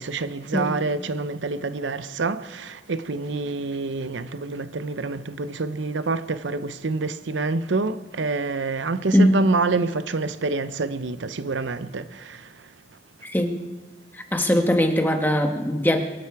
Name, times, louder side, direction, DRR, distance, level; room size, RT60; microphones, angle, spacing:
voice 1, 0.0-12.7, right 3 dB, 85° right, 0.7 m, -27 dB
voice 2, 9.1-9.4 13.2-13.6 14.1-16.0, left 1 dB, 10° left, 1.2 m, -21 dB
22.5 x 11.5 x 4.7 m
head